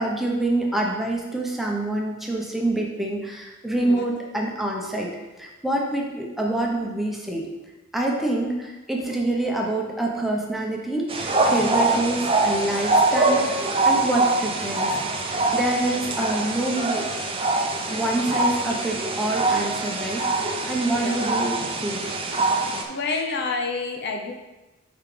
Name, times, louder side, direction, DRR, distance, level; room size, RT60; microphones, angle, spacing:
voice 1, 0.0-5.1 5.4-7.5 7.9-14.9 15.3-17.0 17.9-22.2, right 1 dB, ahead, -2 dB, 0.9 m, -26 dB
voice 2, 3.8-4.1 11.5-12.0 20.9-21.4 22.9-24.3, left 4 dB, 55° left, 2 dB, 0.7 m, -29 dB
sound 1, 11.1-22.8, right 2 dB, 25° right, 0.7 m, -24 dB
5.5 x 5.1 x 5.0 m, 1.1 s
head